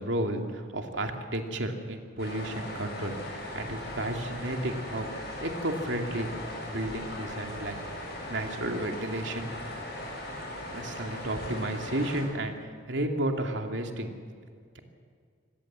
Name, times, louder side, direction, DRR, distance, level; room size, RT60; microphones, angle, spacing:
voice 1, 0.0-6.3 6.7-7.8 8.3-9.5 10.7-14.1, right 1 dB, 75° right, 4 dB, 2.5 m, -32 dB
sound 1, 2.2-12.2, left 1 dB, 55° left, 7.6 m, -39 dB
25.0 x 19.0 x 7.5 m, 2.1 s
head